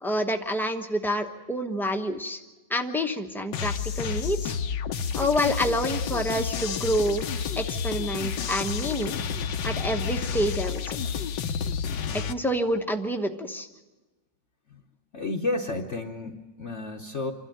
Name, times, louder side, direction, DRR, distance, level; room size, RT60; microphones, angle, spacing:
voice 1, 0.0-2.4 2.7-4.5 5.1-7.3 7.6-9.2 9.6-11.0 12.2-13.7, equal, ahead, 4 dB, 0.7 m, -28 dB
sound 1, 3.5-12.3, left 6 dB, 75° left, 1.5 m, -30 dB
voice 2, 15.1-17.3, left 2 dB, 45° left, 1 dB, 1.1 m, -31 dB
27.0 x 12.5 x 8.9 m, 1.2 s
omnidirectional pair, 2.0 m